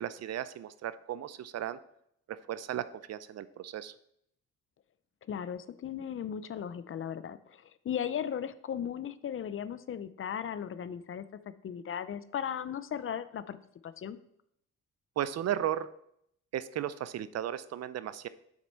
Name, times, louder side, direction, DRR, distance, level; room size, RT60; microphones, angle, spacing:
voice 1, 0.0-1.8 2.3-3.9 15.2-15.9 16.5-18.3, right 11 dB, 60° right, 15 dB, 0.5 m, -35 dB
voice 2, 5.3-11.2 11.6-13.6 13.8-14.2, left 8 dB, 45° left, 14 dB, 0.6 m, -37 dB
7.5 x 6.0 x 4.4 m, 0.72 s
cardioid pair, 90°, 30 cm